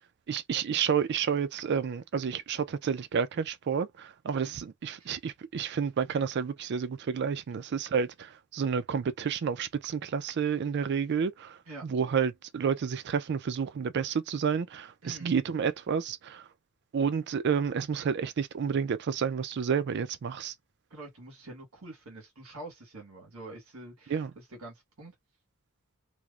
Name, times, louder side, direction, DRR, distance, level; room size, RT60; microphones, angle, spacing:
voice 1, 0.3-16.5 16.9-20.5 24.1-24.3, right 6 dB, 55° right, 0.4 m, -30 dB
voice 2, 15.0-15.3 20.9-25.1, right 2 dB, 75° right, 1.5 m, -46 dB
2.9 x 2.0 x 2.4 m
head